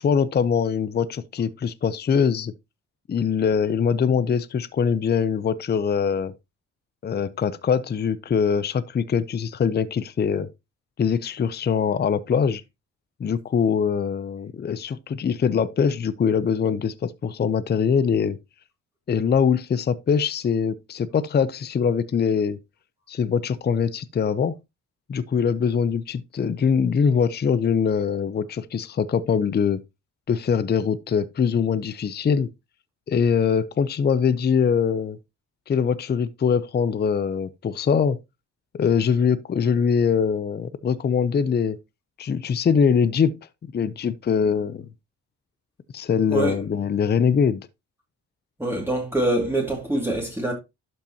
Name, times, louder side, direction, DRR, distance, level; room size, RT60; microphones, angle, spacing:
voice 1, 0.0-2.5 3.1-6.3 7.0-10.5 11.0-12.6 13.2-18.4 19.1-22.6 23.1-24.6 25.1-29.8 30.3-32.5 33.1-35.2 35.7-38.2 38.7-41.8 42.2-43.4 43.7-44.9 45.9-47.7, left 6 dB, 30° left, 0.6 m, -23 dB
voice 2, 48.6-50.5, right 1 dB, 10° right, 2.3 m, -24 dB
11.5 x 5.5 x 2.8 m
cardioid pair, 105°, 31 cm